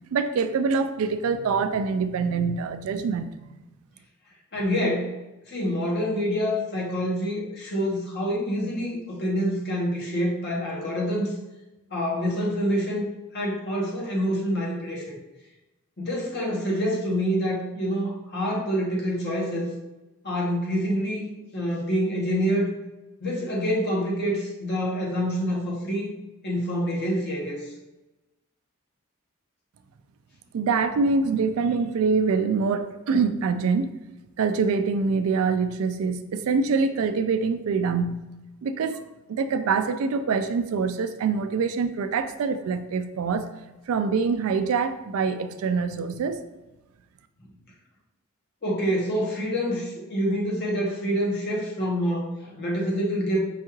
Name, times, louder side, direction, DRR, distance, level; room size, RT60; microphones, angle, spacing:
voice 1, 0.1-3.3 30.5-33.9 34.4-38.2 38.6-39.0 39.3-43.5 43.9-46.4, right 5 dB, 70° right, 10 dB, 0.3 m, -25 dB
voice 2, 4.5-5.1 5.5-11.3 11.9-13.1 13.3-15.2 16.0-19.7 20.2-22.7 23.2-26.1 26.4-27.6 48.6-53.4, equal, 50° left, -3 dB, 1.0 m, -26 dB
5.3 x 2.4 x 3.0 m, 1.0 s
head